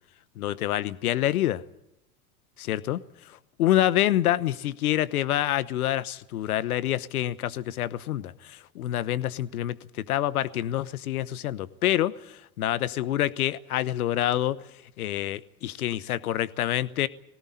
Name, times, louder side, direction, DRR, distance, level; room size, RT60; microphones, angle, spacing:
voice 1, 0.4-1.6 2.6-3.0 3.6-9.8 10.1-14.6 15.0-17.1, left 13 dB, 75° left, 17 dB, 1.1 m, -27 dB
20.5 x 17.5 x 9.9 m, 0.85 s
hypercardioid pair, 90°, 44 cm